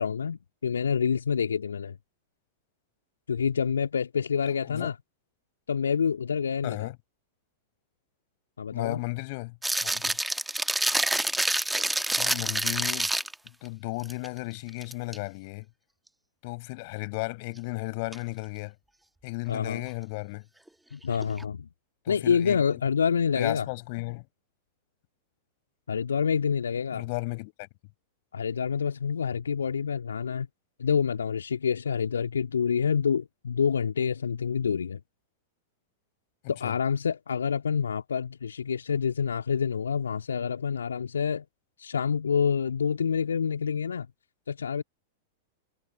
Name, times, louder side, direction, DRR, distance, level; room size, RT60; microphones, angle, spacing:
voice 1, 0.0-2.0 3.3-5.0 5.7-6.9 8.6-9.0 19.5-19.8 20.9-21.7 22.1-23.7 25.9-27.1 28.3-30.5 30.8-35.0 36.5-41.4 41.8-44.1 44.5-44.8, left 6 dB, 75° left, 2.1 m, -27 dB
voice 2, 4.5-4.9 6.6-6.9 8.7-9.6 9.8-10.2 12.2-13.1 13.6-15.7 16.4-18.7 19.2-20.4 22.0-22.8 23.3-24.2 26.9-27.7 36.6-36.7, left 27 dB, 50° left, 4.9 m, -34 dB
sound 1, 9.6-13.5 14.0-14.3 14.7-15.2 18.1-18.2 21.1-21.4, right 1 dB, 5° right, 1.3 m, -27 dB
figure-of-eight pair, 95°, 0 cm